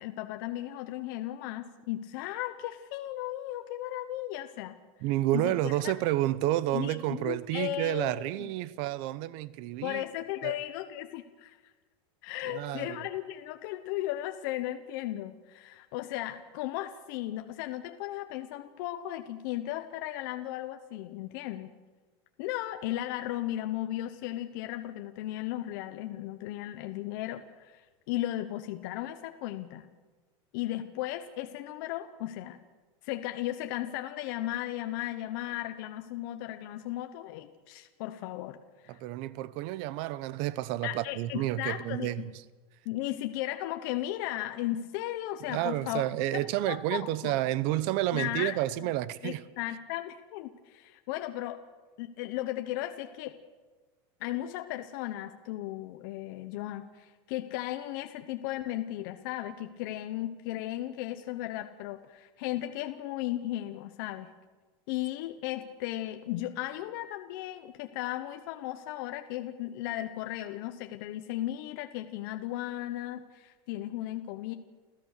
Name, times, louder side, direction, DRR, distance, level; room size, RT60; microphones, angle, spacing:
voice 1, 0.0-4.8 5.3-5.5 5.8-5.9 6.7-8.5 9.8-11.6 12.2-21.7 22.4-29.9 30.5-32.6 33.0-38.6 38.8-39.0 40.8-42.3 42.8-46.0 46.3-47.3 48.1-48.9 49.2-51.6 52.0-53.4 54.2-64.3 64.9-74.5, left 14 dB, 55° left, 1.0 m, -36 dB
voice 2, 5.0-10.0 10.4-10.5 12.4-13.0 38.9-42.3 45.5-49.4, right 15 dB, 45° right, 0.8 m, -30 dB
29.5 x 14.0 x 6.7 m
supercardioid pair, 170°, 13 cm